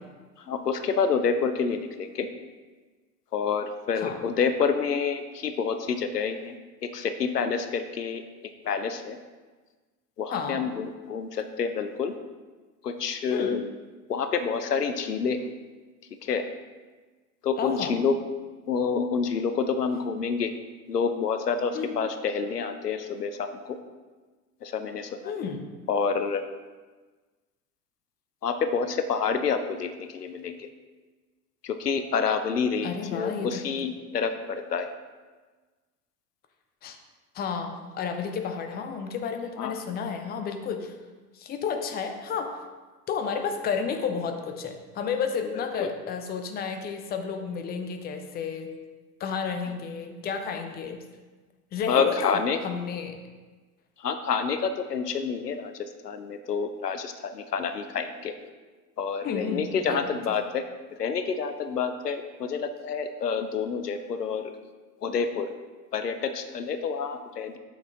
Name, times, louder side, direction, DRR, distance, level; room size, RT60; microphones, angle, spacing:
voice 1, 0.5-2.3 3.3-6.6 6.8-8.2 8.6-9.2 10.2-12.1 12.8-13.6 14.1-15.4 16.2-16.4 17.4-18.2 18.7-20.5 20.9-23.8 24.6-25.3 25.9-26.4 28.4-30.7 31.6-34.9 39.6-39.8 45.5-45.9 51.9-52.6 54.0-58.3 59.0-60.6 61.0-64.5 65.0-65.5 65.9-67.6, left 6 dB, 85° left, 9 dB, 0.6 m, -28 dB
voice 2, 10.3-10.6 13.3-13.6 17.6-18.0 21.7-22.0 25.2-25.6 32.8-33.6 36.8-37.0 37.3-40.9 41.3-42.6 43.1-48.7 49.2-51.0 51.7-53.2 59.2-60.4, left 6 dB, 20° left, 5 dB, 0.6 m, -31 dB
6.2 x 6.2 x 3.7 m, 1.3 s
figure-of-eight pair, 80°, 47 cm